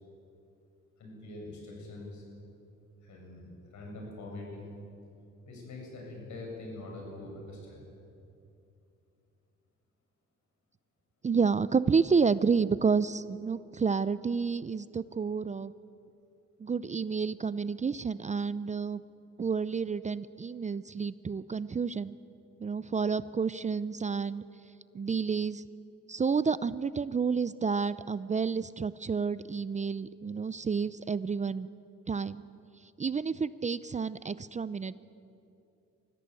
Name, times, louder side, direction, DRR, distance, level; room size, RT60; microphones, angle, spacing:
voice 1, 1.0-2.2 3.0-4.8 5.4-7.9, left 2 dB, 70° left, -1 dB, 7.7 m, -44 dB
voice 2, 11.2-15.7 16.6-19.0 19.4-22.2 22.6-24.4 24.9-25.6 26.1-31.7 32.1-32.4 33.0-35.0, right 5 dB, 25° right, 16 dB, 0.5 m, -30 dB
25.0 x 16.0 x 8.3 m, 2.7 s
cardioid pair, 90°, 30 cm